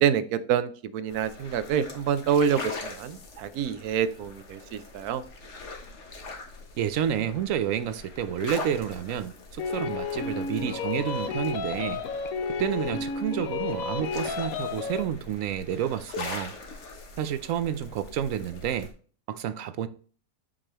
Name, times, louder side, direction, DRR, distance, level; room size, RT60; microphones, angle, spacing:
voice 1, 0.0-5.2, right 8 dB, 85° right, 1.2 m, -27 dB
sound 1, 1.1-18.9, left 3 dB, 55° left, 1.4 m, -42 dB
voice 2, 6.8-12.0 12.6-16.5 17.2-18.9 19.3-19.9, right 9 dB, 70° right, 0.9 m, -30 dB
sound 2, 9.6-15.1, left 5 dB, 70° left, 1.1 m, -32 dB
7.4 x 5.4 x 3.0 m
omnidirectional pair, 1.6 m